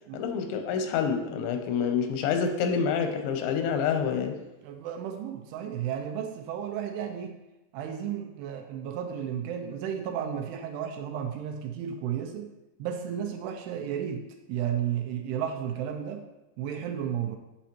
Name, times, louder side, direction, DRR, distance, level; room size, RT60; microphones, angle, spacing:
voice 1, 0.1-4.4, left 6 dB, 90° left, 6 dB, 3.1 m, -27 dB
voice 2, 4.6-7.4 7.7-12.5 12.8-16.3 16.6-17.4, right 9 dB, 85° right, 5 dB, 2.4 m, -33 dB
8.2 x 7.1 x 3.0 m, 0.98 s
omnidirectional pair, 5.1 m